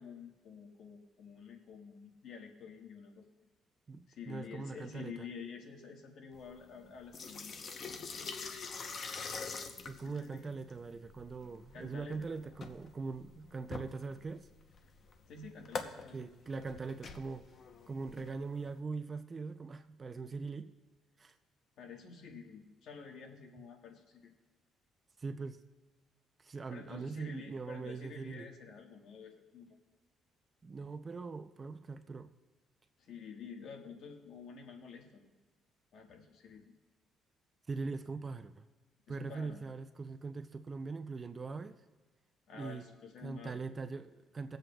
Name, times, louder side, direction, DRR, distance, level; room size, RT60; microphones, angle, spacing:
voice 1, 0.0-3.3 4.1-7.5 10.0-10.5 11.7-12.3 15.3-16.3 21.8-24.2 26.7-29.8 33.0-35.3 35.9-36.6 39.1-39.7 42.5-43.6, left 5 dB, 60° left, 2 dB, 1.4 m, -49 dB
voice 2, 3.9-5.3 9.8-14.5 16.1-17.4 17.9-20.7 21.2-21.3 25.2-25.6 26.4-28.5 30.6-32.3 37.7-38.6 39.1-41.8 42.5-42.8 43.2-44.6, right 4 dB, 25° right, 9 dB, 0.4 m, -41 dB
sound 1, 6.3-18.8, left 4 dB, 40° left, 0.7 m, -45 dB
22.0 x 7.8 x 2.3 m, 1.3 s
cardioid pair, 155°, 0 cm